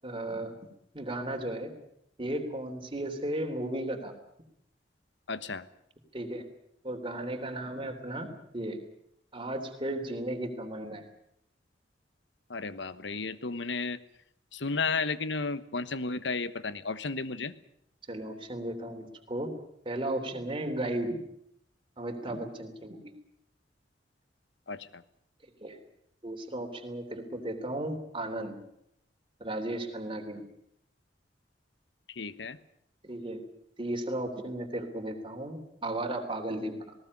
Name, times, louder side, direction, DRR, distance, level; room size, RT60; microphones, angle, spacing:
voice 1, 0.0-0.5 0.9-1.7 2.2-4.1 6.1-6.4 6.8-8.3 8.5-8.8 9.3-11.0 18.1-19.5 19.8-21.2 22.0-23.1 25.6-25.8 26.2-28.6 29.4-30.4 33.0-33.4 33.8-36.9, right 1 dB, 30° right, 3 dB, 3.4 m, -35 dB
voice 2, 5.3-5.7 12.5-14.0 14.5-17.5 24.7-25.0 32.1-32.6, left 4 dB, 80° left, 15 dB, 1.2 m, -33 dB
19.5 x 18.0 x 9.7 m, 0.75 s
head